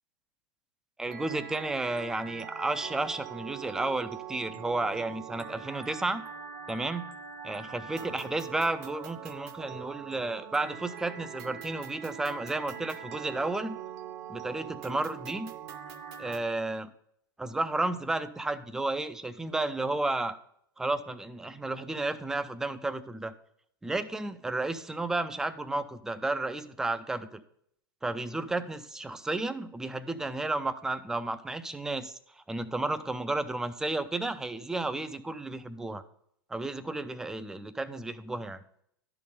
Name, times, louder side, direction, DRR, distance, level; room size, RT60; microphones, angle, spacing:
voice 1, 1.0-6.2 6.7-7.1 7.4-13.8 14.3-15.5 16.2-16.9 17.4-20.4 20.8-23.3 23.8-27.4 28.0-32.1 32.5-36.0 36.5-38.6, right 2 dB, 5° right, 11 dB, 0.4 m, -32 dB
sound 1, 1.0-16.4, right 8 dB, 45° right, 0.7 m, -43 dB
11.5 x 3.9 x 5.1 m, 0.69 s
figure-of-eight pair, 95°, 12 cm